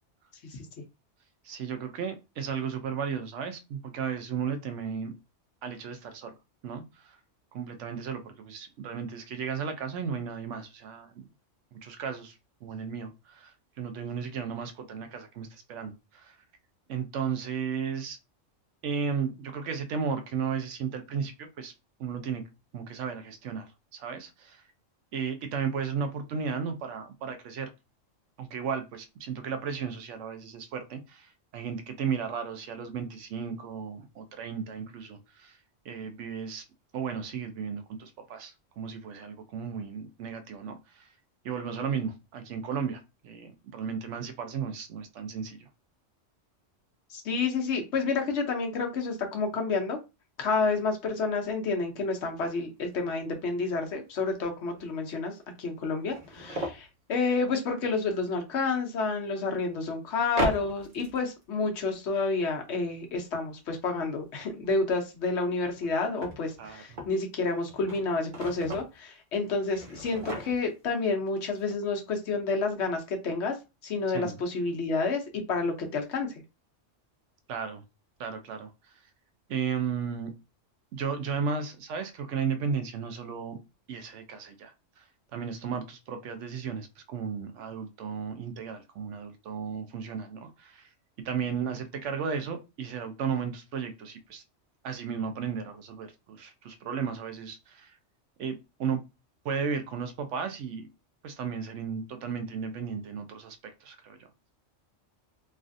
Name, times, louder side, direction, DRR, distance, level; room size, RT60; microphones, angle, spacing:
voice 1, 1.4-5.1 5.6-6.3 6.6-7.2 7.5-11.3 11.7-16.4 16.9-18.2 18.8-21.7 22.0-22.4 22.7-23.7 23.9-24.6 25.1-27.7 28.4-35.6 35.8-36.6 36.9-41.1 41.4-45.7 66.6-67.0 74.1-74.4 77.5-77.8 78.2-79.0 79.5-80.3 80.9-83.6 83.9-85.0 85.3-90.9 91.2-94.4 94.8-98.0 98.4-99.0 99.4-100.9 101.2-104.3, right 6 dB, 75° right, 0.9 m, -34 dB
voice 2, 47.1-50.0 50.4-73.6 73.8-76.3, left 4 dB, 65° left, 1.0 m, -29 dB
sound 1, 52.5-52.6 52.9-53.0 53.6-53.7 54.8-54.9 55.1-55.2 55.8-56.9 58.9-59.0 60.3-61.4 65.4-67.2 67.6-69.0 69.6-70.9 71.3-71.4 71.6-71.8, equal, 45° right, 0.9 m, -37 dB
3.2 x 2.4 x 2.5 m
omnidirectional pair, 1.3 m